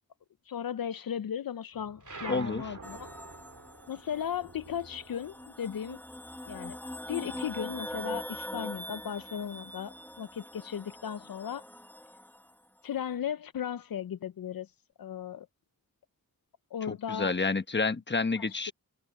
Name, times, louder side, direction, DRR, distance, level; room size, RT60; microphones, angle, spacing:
voice 1, 0.5-3.1 3.9-6.0 6.5-6.8 7.1-11.7 12.8-14.7 15.0-15.5 16.7-17.3 18.4-18.7, left 9 dB, 75° left, 0.5 m, -36 dB
sound 1, 1.7-5.8, left 3 dB, 60° left, 7.7 m, -64 dB
sound 2, 2.0-6.9 7.2-8.6, right 3 dB, 55° right, 2.6 m, -47 dB
voice 2, 2.3-2.6 16.9-18.7, left 4 dB, 30° left, 1.0 m, -29 dB
sound 3, 2.8-12.5, equal, 5° left, 0.8 m, -43 dB
wide cardioid pair, 55°, 35 cm